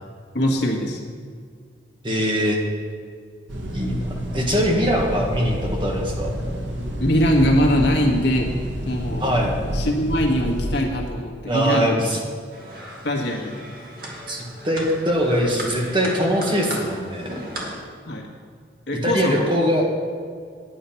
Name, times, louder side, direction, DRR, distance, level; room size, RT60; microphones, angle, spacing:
voice 1, 0.3-1.0 7.0-8.5 8.9-9.3 9.7-12.0 13.0-13.6 18.1-18.3 18.9-19.5, equal, 65° left, 0 dB, 1.6 m, -22 dB
voice 2, 2.0-2.6 3.7-4.0 4.3-6.4 9.2-9.5 11.5-12.2 14.3-17.4 19.0-19.9, equal, 25° right, 0 dB, 1.5 m, -22 dB
sound 1, 3.5-10.8, equal, 80° right, 1.7 m, -28 dB
sound 2, 12.5-17.8, right 1 dB, 50° right, 2.1 m, -36 dB
9.5 x 9.1 x 5.8 m, 2.1 s
head